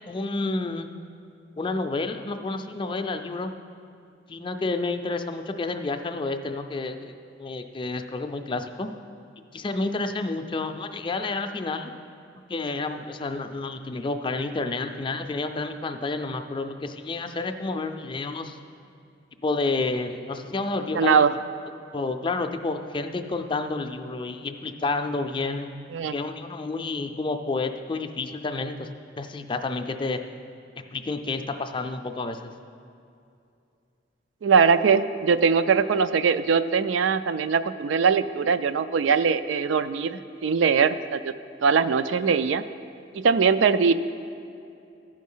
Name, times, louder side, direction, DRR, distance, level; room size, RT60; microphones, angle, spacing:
voice 1, 0.1-0.9 1.6-3.5 4.3-7.1 7.4-8.9 9.5-11.9 12.5-18.6 19.4-21.3 21.9-25.7 26.1-30.2 30.9-32.5, left 3 dB, 25° left, 7 dB, 0.4 m, -30 dB
voice 2, 20.9-21.3 25.9-26.1 34.4-41.3 41.6-42.6 43.1-43.9, right 6 dB, 80° right, 12 dB, 0.4 m, -21 dB
13.5 x 5.2 x 5.5 m, 2.6 s
head